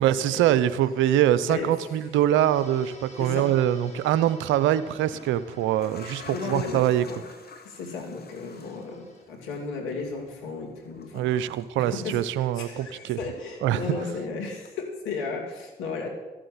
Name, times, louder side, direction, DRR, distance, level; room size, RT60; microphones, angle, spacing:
voice 1, 0.0-7.1 11.1-13.2 13.6-13.8, right 11 dB, 80° right, 15 dB, 0.7 m, -23 dB
voice 2, 1.5-1.9 3.2-3.5 6.3-7.3 7.6-11.3 11.8-16.1, left 4 dB, 85° left, 1 dB, 2.9 m, -34 dB
sound 1, 2.4-9.2, left 1 dB, 35° left, 4.3 m, -51 dB
sound 2, 3.8-4.0 4.8-12.8 13.1-14.2 14.7-14.8, left 5 dB, 55° left, 1.9 m, -48 dB
14.0 x 7.7 x 9.7 m, 1.1 s
hypercardioid pair, 45°, 19 cm